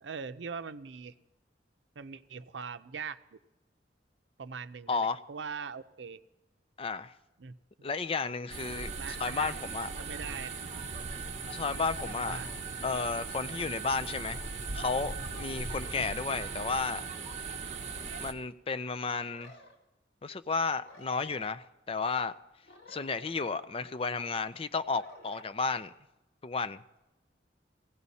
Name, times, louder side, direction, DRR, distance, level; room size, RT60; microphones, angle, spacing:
voice 1, 0.0-1.1 2.0-3.2 4.4-6.2 7.4-7.6 9.0-9.6 10.0-10.7 12.0-12.5, right 5 dB, 90° right, 0.6 m, -41 dB
voice 2, 4.9-5.2 6.8-7.1 7.8-9.9 11.4-12.4 12.8-17.0 18.2-19.5 20.2-22.3 22.9-25.9 26.4-26.8, left 4 dB, 30° left, 0.5 m, -33 dB
sound 1, 8.5-18.3, right 4 dB, 40° right, 1.1 m, -39 dB
sound 2, 19.2-19.7 20.8-21.5 22.6-23.7 24.9-25.5, left 1 dB, 65° left, 2.0 m, -53 dB
17.0 x 16.5 x 4.2 m
head